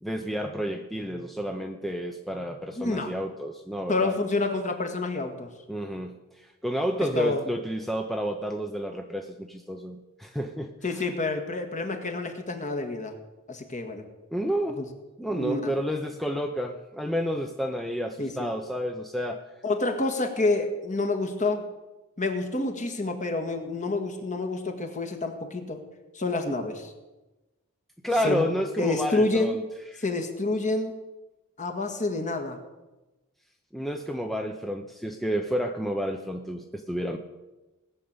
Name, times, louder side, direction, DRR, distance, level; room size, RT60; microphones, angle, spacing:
voice 1, 0.0-4.1 5.7-10.7 14.3-14.8 15.2-19.4 28.0-29.6 29.9-30.0 33.7-37.2, equal, ahead, 4 dB, 0.8 m, -30 dB
voice 2, 2.8-3.1 3.9-5.5 7.0-7.4 10.8-13.2 13.5-14.1 14.8-14.9 15.3-15.8 18.2-18.5 19.6-21.7 22.2-25.8 26.1-26.9 28.2-28.5 28.8-29.6 30.0-31.0 31.6-32.6, left 2 dB, 35° left, 5 dB, 1.8 m, -28 dB
18.5 x 6.7 x 8.9 m, 1.1 s
head